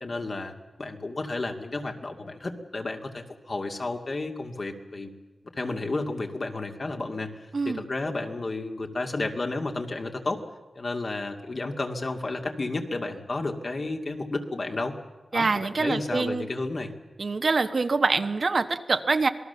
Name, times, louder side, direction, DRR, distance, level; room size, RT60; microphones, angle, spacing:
voice 1, 0.0-5.1 5.5-10.4 10.8-14.9 15.3-16.9, left 2 dB, 50° left, 4 dB, 2.3 m, -32 dB
voice 2, 15.3-16.5 17.2-19.3, right 3 dB, 60° right, 8 dB, 1.3 m, -25 dB
26.5 x 19.0 x 6.9 m, 1.2 s
wide cardioid pair, 80°, 0 cm